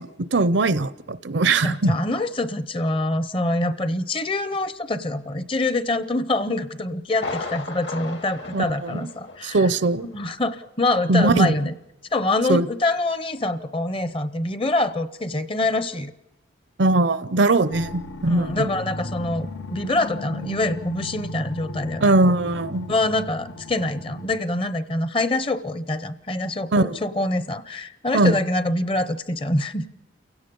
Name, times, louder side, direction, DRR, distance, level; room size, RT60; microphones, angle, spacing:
voice 1, 0.0-1.9 8.5-9.1 9.4-10.1 11.1-11.5 12.5-12.7 16.8-18.7 22.0-22.9 26.7-27.0 28.1-28.4, right 2 dB, 65° right, 0.7 m, -20 dB
voice 2, 1.6-9.7 10.0-11.7 12.1-16.1 18.3-22.1 22.9-29.9, left 2 dB, 30° left, 0.8 m, -25 dB
Thunder, 7.1-9.7 10.0-10.1 10.6-10.7, left 3 dB, 65° left, 2.4 m, -35 dB
sound 1, 17.7-24.4, left 1 dB, 80° left, 1.1 m, -36 dB
29.5 x 17.0 x 5.4 m
head